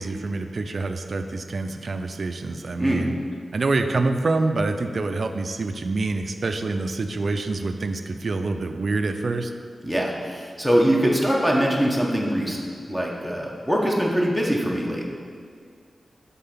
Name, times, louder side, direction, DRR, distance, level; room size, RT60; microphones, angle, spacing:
voice 1, 0.0-3.1 3.5-9.5, right 3 dB, 55° right, 7 dB, 0.4 m, -26 dB
voice 2, 9.8-15.0, equal, ahead, -2 dB, 0.9 m, -23 dB
5.6 x 3.8 x 5.7 m, 2.1 s
wide cardioid pair, 100°, 0 cm